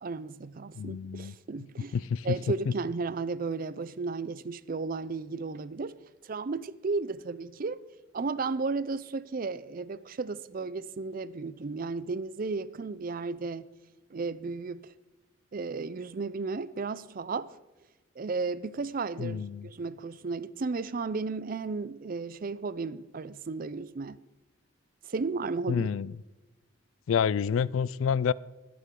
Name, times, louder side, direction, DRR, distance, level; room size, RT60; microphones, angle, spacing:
voice 1, 0.0-2.0 2.2-5.9 6.2-7.8 8.1-13.7 14.1-14.9 15.5-17.5 18.2-24.2 25.1-25.9, right 4 dB, 45° right, 0.4 m, -34 dB
voice 2, 0.7-1.3 1.9-2.3 2.7-2.8 19.2-19.7 25.7-26.1 27.1-28.3, left 7 dB, 85° left, 0.3 m, -28 dB
21.0 x 8.6 x 3.8 m
head